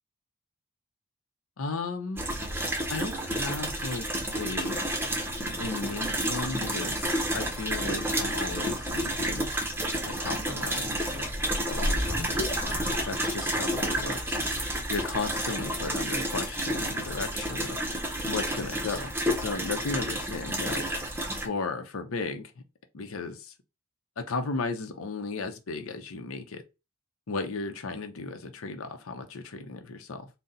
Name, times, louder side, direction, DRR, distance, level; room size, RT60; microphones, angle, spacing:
voice 1, 1.6-2.2 2.9-4.8 5.6-9.5 10.1-11.2 11.7-12.5 13.1-14.5 14.9-17.8 18.2-20.8 21.4-22.5 22.9-23.5 24.2-26.6 27.3-30.3, left 3 dB, 85° left, 0.7 m, -35 dB
sound 1, 2.2-21.5, right 1 dB, 10° right, 0.7 m, -30 dB
sound 2, 11.1-13.8, left 1 dB, 30° left, 0.7 m, -32 dB
4.0 x 2.2 x 3.8 m
head